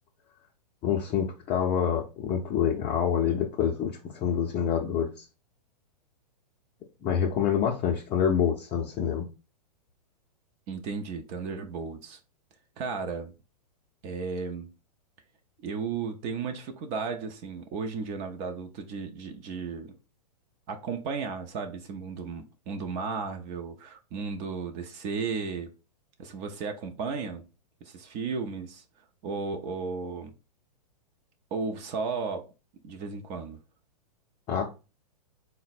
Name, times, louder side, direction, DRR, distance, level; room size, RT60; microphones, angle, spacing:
voice 1, 0.8-5.1 7.0-9.3 34.5-34.7, left 8 dB, 25° left, 0.6 m, -26 dB
voice 2, 10.7-12.2 12.8-13.3 14.0-14.7 15.6-19.9 20.7-25.7 26.2-27.4 27.8-28.8 29.2-30.3 31.5-32.5 32.8-33.6, right 5 dB, 35° right, 0.6 m, -34 dB
3.9 x 2.1 x 4.1 m
hypercardioid pair, 125°, 21 cm